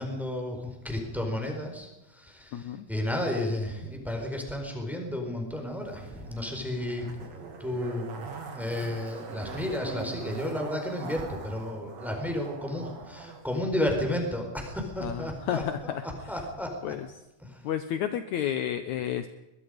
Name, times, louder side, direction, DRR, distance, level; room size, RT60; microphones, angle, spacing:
voice 1, 0.0-8.3 8.5-16.9 17.4-17.6, left 1 dB, ahead, 2 dB, 4.3 m, -32 dB
voice 2, 2.5-2.9 15.0-16.0 16.8-17.1 17.6-19.3, left 10 dB, 70° left, 9 dB, 2.1 m, -31 dB
Zipper (clothing), 5.8-13.4 13.7-13.8, right 4 dB, 55° right, 3.6 m, -42 dB
23.5 x 21.5 x 5.2 m, 0.97 s
omnidirectional pair, 3.8 m